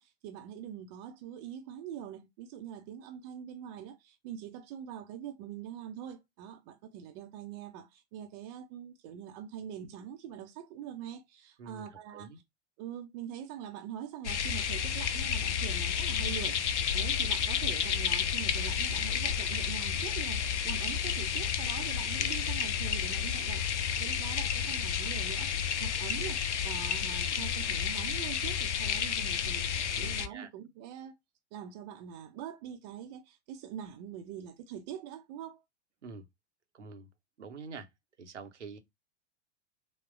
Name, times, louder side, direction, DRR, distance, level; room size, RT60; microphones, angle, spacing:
voice 1, 0.0-12.3 12.8-23.6 24.0-31.1 31.5-35.6, right 9 dB, 35° right, 0.6 m, -44 dB
sound 1, 14.2-30.3, left 8 dB, 70° left, 0.5 m, -31 dB
voice 2, 30.0-30.5 36.0-36.3 36.7-37.1 37.4-37.9 38.2-38.8, right 4 dB, 75° right, 0.8 m, -46 dB
3.4 x 2.1 x 2.5 m
figure-of-eight pair, 100°, 36 cm